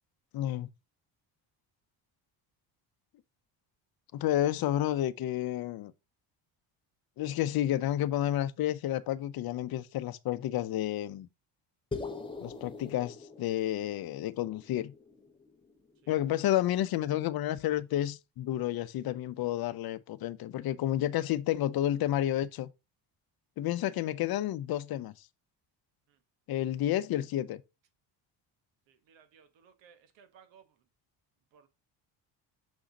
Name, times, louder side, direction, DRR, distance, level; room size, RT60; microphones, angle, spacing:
voice 1, 0.3-0.7 4.1-5.9 7.2-11.3 12.4-14.9 16.1-22.7 23.6-25.1 26.5-27.6, left 12 dB, 55° left, 0.7 m, -30 dB
sound 1, 11.9-16.3, left 4 dB, 10° left, 1.0 m, -43 dB
voice 2, 29.1-30.6 31.5-31.7, right 7 dB, 85° right, 1.4 m, -59 dB
6.3 x 6.3 x 2.9 m
cardioid pair, 140°, 43 cm